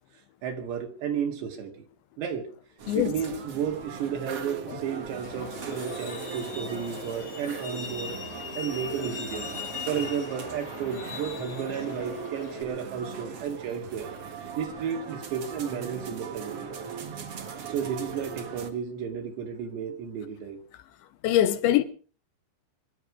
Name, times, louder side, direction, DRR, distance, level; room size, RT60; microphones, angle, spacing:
voice 1, 0.4-1.9 2.2-2.5 3.0-8.2 8.6-9.5 9.9-14.1 14.6-16.7 17.7-20.6, right 7 dB, 75° right, 4.0 m, -33 dB
sound 1, 2.8-18.7, right 6 dB, 50° right, 2.0 m, -39 dB
Truck, 5.2-12.6, left 6 dB, 45° left, 3.4 m, -40 dB
voice 2, 21.2-21.8, left 12 dB, 85° left, 3.3 m, -22 dB
24.0 x 11.5 x 4.9 m
omnidirectional pair, 5.2 m